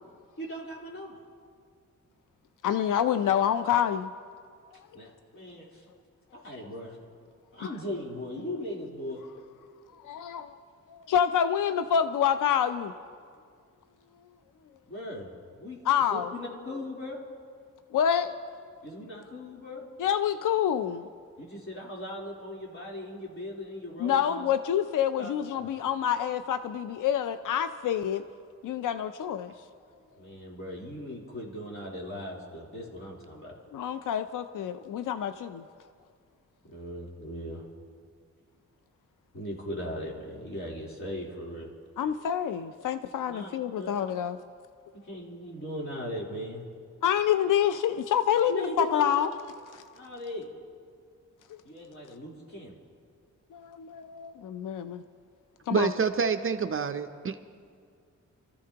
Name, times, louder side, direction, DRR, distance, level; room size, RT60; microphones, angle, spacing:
voice 1, 0.4-1.2 4.9-5.8 6.3-7.0 7.5-9.2 14.9-15.8 16.1-17.2 18.8-19.9 21.4-24.4 25.2-25.3 25.6-25.7 30.2-33.6 36.7-37.6 39.3-41.7 43.3-43.5 43.8-43.9 45.0-46.6 48.5-49.3 49.9-50.5 51.6-52.7, left 1 dB, 45° left, -4 dB, 3.6 m, -38 dB
voice 2, 2.6-4.1 10.0-10.6 10.9-12.9 15.9-16.3 17.9-18.3 20.0-21.1 24.0-28.2 28.6-29.5 33.7-35.6 42.0-44.4 47.0-49.3 49.7-49.8 53.5-55.0 55.7-55.9, left 9 dB, 90° left, 10 dB, 0.5 m, -27 dB
voice 3, 55.7-57.4, right 6 dB, 45° right, 9 dB, 0.6 m, -27 dB
28.0 x 14.0 x 2.9 m, 2.1 s
wide cardioid pair, 125°, 30 cm